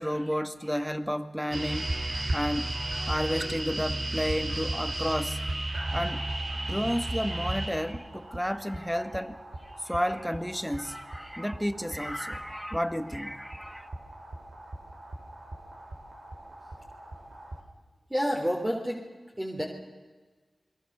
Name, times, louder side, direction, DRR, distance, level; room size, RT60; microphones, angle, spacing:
voice 1, 0.0-13.9, equal, ahead, 1.9 m, -32 dB
sound 1, 1.5-17.6, right 1 dB, 60° right, 4.2 m, -35 dB
voice 2, 18.1-19.1 19.4-19.6, equal, 15° right, 3.6 m, -29 dB
28.5 x 21.5 x 6.8 m
cardioid pair, 40°, 0 cm